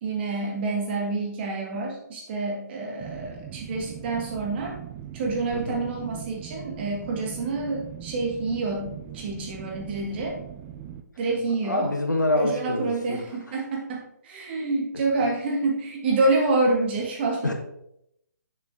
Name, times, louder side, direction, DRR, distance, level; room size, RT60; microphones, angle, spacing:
voice 1, 0.0-4.8 5.1-10.4 11.2-11.9 12.4-17.5, right 3 dB, 35° right, 0 dB, 1.9 m, -27 dB
sound 1, 3.0-11.0, right 10 dB, 20° right, 0.5 m, -40 dB
voice 2, 5.5-5.9 11.6-13.6 17.4-17.5, left 1 dB, 90° left, 4 dB, 1.4 m, -27 dB
7.0 x 4.8 x 3.8 m, 0.78 s
figure-of-eight pair, 140°, 10 cm